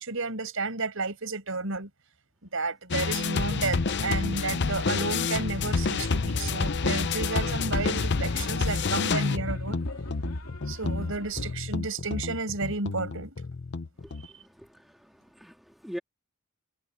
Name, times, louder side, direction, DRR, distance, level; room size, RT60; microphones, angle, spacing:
voice 1, 0.0-1.9 2.4-9.8 10.7-13.3 14.2-14.3, right 3 dB, 65° right, 7.1 m, -32 dB
sound 1, 2.9-14.3, left 4 dB, 55° left, 0.7 m, -29 dB
sound 2, 6.0-11.5, left 1 dB, 80° left, 3.0 m, -37 dB
voice 2, 14.4-16.0, equal, ahead, 2.3 m, -43 dB
head